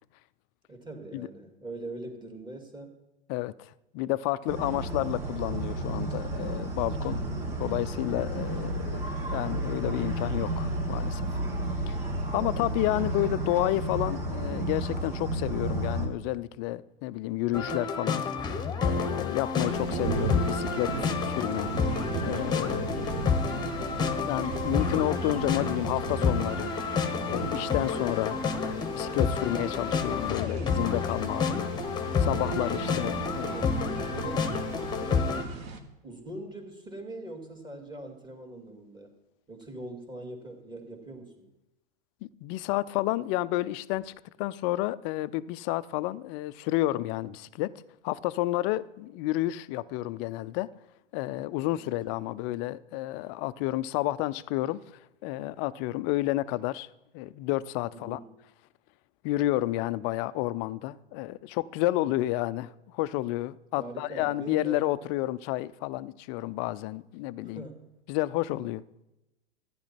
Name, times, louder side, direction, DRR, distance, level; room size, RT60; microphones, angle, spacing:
voice 1, 0.7-2.9 7.2-7.6 12.4-12.8 32.9-33.7 34.1-35.4 36.0-39.1 39.5-41.5 51.7-51.8 52.1-52.4 57.9-58.3 63.8-64.9 67.4-67.9, right 2 dB, 15° right, 2.5 m, -43 dB
voice 2, 3.3-7.2 7.6-9.0 9.3-11.3 11.9-12.0 12.3-18.2 18.8-21.7 22.2-23.2 24.2-26.7 27.3-31.7 32.2-33.5 42.2-44.1 44.4-47.7 48.0-50.7 51.1-54.8 55.2-56.9 57.1-58.2 59.2-67.6 68.1-68.8, left 16 dB, 35° left, 0.5 m, -30 dB
sound 1, 4.5-16.1, right 1 dB, 65° right, 3.2 m, -32 dB
sound 2, 17.5-35.4, left 5 dB, 15° left, 1.2 m, -29 dB
sound 3, 19.6-35.8, right 5 dB, 35° right, 1.7 m, -37 dB
14.5 x 9.8 x 4.4 m
figure-of-eight pair, 100°, 29 cm